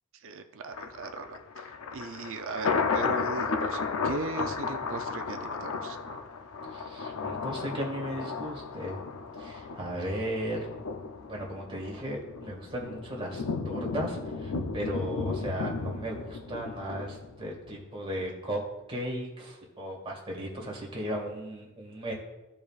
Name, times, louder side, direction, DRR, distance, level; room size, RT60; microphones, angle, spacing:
voice 1, 0.2-6.0, right 3 dB, 65° right, 7 dB, 0.6 m, -38 dB
Thunder, 0.7-17.8 18.2-18.3, left 4 dB, 70° left, 0.6 m, -34 dB
voice 2, 6.7-9.0 9.3-10.7 11.3-18.6 18.9-22.1, right 1 dB, 25° right, -1 dB, 2.0 m, -36 dB
14.5 x 4.9 x 2.4 m, 1.1 s
head